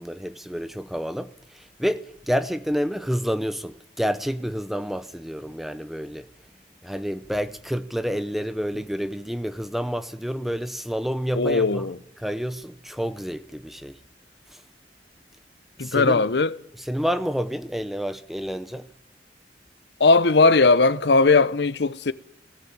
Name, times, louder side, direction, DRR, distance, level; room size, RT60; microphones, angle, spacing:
voice 1, 0.0-6.3 6.8-11.9 12.2-14.0 14.5-14.6 15.8-16.2 16.8-18.9, equal, ahead, 0.7 m, -29 dB
voice 2, 11.4-12.0 15.8-16.5 20.0-22.1, left 3 dB, 70° left, 0.8 m, -18 dB
19.0 x 16.5 x 8.7 m
head